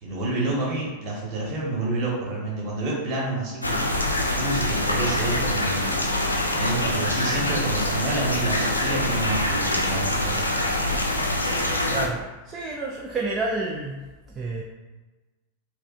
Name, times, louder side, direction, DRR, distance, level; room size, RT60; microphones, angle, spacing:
voice 1, 0.0-3.8 4.3-6.0 6.5-10.4, right 2 dB, 35° right, -4 dB, 1.2 m, -28 dB
sound 1, 3.6-12.1, left 1 dB, 80° left, 0.4 m, -25 dB
voice 2, 11.9-14.6, right 3 dB, 20° right, -2 dB, 0.4 m, -30 dB
4.7 x 2.1 x 2.4 m, 1.2 s
figure-of-eight pair, 90°, 0 cm